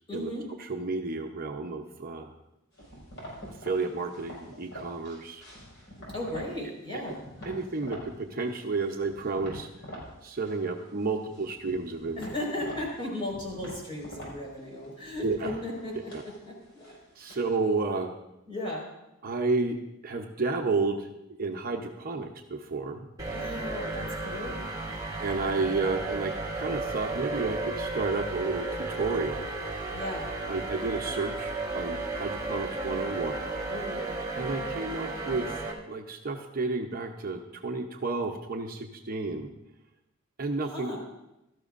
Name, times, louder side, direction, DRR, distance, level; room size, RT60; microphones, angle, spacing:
voice 1, 0.1-0.5 6.1-7.2 12.2-17.0 17.3-17.4 18.5-18.9 23.3-24.6 29.9-30.3 33.7-34.0 40.6-41.0, left 1 dB, 25° left, -3 dB, 4.7 m, -36 dB
voice 2, 0.6-2.3 3.6-5.4 7.4-9.7 10.2-12.2 15.2-15.6 16.1-16.2 17.2-18.1 19.2-19.8 20.0-21.1 21.4-23.1 25.0-29.5 30.5-33.5 34.4-39.5 40.4-40.9, right 3 dB, 45° right, 2 dB, 0.8 m, -31 dB
sound 1, 2.8-6.6 6.9-8.1 8.5-10.1 10.4-11.0 11.3-17.6, equal, 60° left, 5.4 m, -45 dB
sound 2, 23.2-35.7, right 3 dB, 20° right, 1.9 m, -34 dB
17.0 x 13.0 x 2.5 m, 0.91 s
head